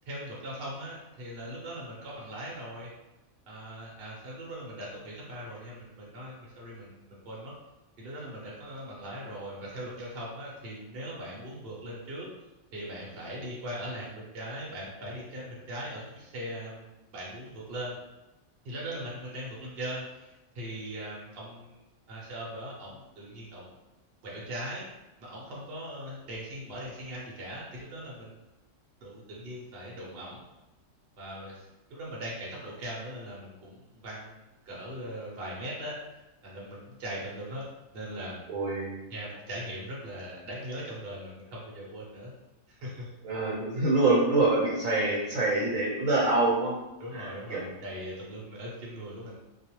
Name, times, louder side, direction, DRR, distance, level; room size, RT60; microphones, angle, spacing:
voice 1, 0.0-2.9 3.5-7.5 8.0-12.3 12.7-18.0 18.6-21.8 22.1-23.7 24.2-24.9 25.2-28.4 29.0-30.4 31.2-36.0 36.4-37.7 37.9-38.4 39.1-42.3 42.7-43.1 47.0-49.4, equal, 55° right, -5 dB, 0.7 m, -40 dB
voice 2, 38.5-39.0 43.2-46.8 47.1-47.7, right 2 dB, 80° right, -5 dB, 1.0 m, -26 dB
2.4 x 2.1 x 2.8 m, 1.0 s
omnidirectional pair, 1.4 m